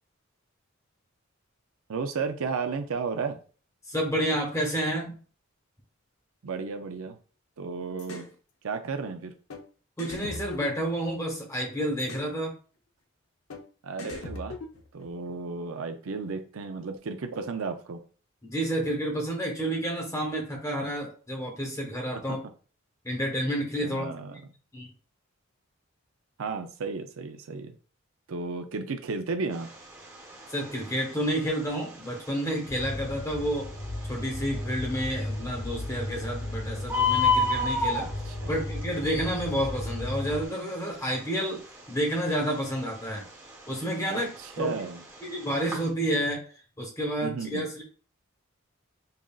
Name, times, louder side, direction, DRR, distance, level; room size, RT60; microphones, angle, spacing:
voice 1, 1.9-3.4 6.4-7.2 7.6-8.3 8.6-9.3 13.8-14.6 14.9-18.0 22.1-22.2 23.8-24.4 26.4-27.7 28.3-29.7 38.0-38.6 44.1-45.0 47.2-47.7, right 4 dB, 75° right, 7 dB, 0.5 m, -33 dB
voice 2, 3.9-5.1 10.0-12.5 18.4-22.4 23.0-24.1 24.7-24.9 30.5-33.7 34.0-38.1 38.5-43.3 43.7-44.3 44.6-44.8 45.2-46.4 46.8-47.8, equal, 15° left, 0 dB, 1.1 m, -30 dB
sound 1, 8.0-8.3 9.5-9.6 10.0-11.4 12.0-12.3 13.5-13.6 14.0-15.1, left 3 dB, 80° left, 0.7 m, -40 dB
Bird, 29.5-45.9, left 3 dB, 15° right, 1.0 m, -33 dB
sound 2, 32.7-40.5, left 1 dB, 40° left, 0.9 m, -35 dB
5.5 x 2.5 x 2.4 m, 0.39 s
head